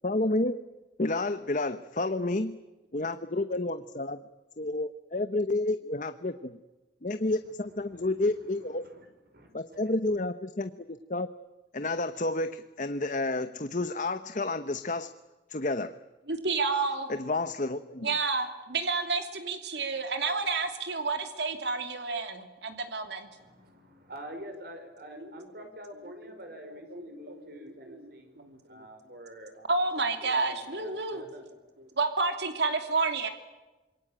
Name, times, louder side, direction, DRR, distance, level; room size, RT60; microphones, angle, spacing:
voice 1, 0.0-0.6 1.0-2.6 2.9-4.2 4.6-6.6 7.0-8.8 9.5-11.3 11.7-15.1 15.5-16.0 17.1-18.1, left 2 dB, 45° left, 10 dB, 0.9 m, -30 dB
voice 2, 7.9-9.9 23.3-28.3 28.6-29.8 30.2-31.4, equal, 55° right, 6 dB, 5.5 m, -47 dB
voice 3, 16.3-17.1 18.0-23.3 26.9-27.6 27.9-28.0 28.4-28.8 29.7-31.2 32.0-33.3, right 4 dB, 75° right, 7 dB, 2.8 m, -30 dB
26.5 x 23.0 x 8.9 m, 1.1 s
head